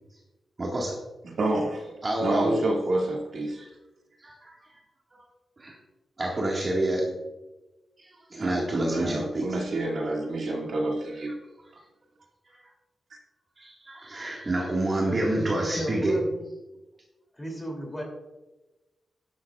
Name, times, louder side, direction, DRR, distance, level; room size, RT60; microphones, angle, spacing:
voice 1, 0.6-1.0 2.0-2.6 3.5-3.7 4.2-4.5 5.1-5.2 5.6-5.8 6.2-7.1 8.0-9.5 12.4-12.6 13.6-16.2, right 1 dB, 30° right, -3 dB, 1.8 m, -28 dB
voice 2, 1.2-1.9 2.2-3.7 8.4-11.4 11.7-11.8, right 2 dB, 65° right, -1 dB, 2.3 m, -29 dB
voice 3, 15.0-16.4 17.4-18.0, equal, 15° left, 0 dB, 2.9 m, -34 dB
12.0 x 11.5 x 2.4 m, 1.1 s
wide cardioid pair, 140°, 0 cm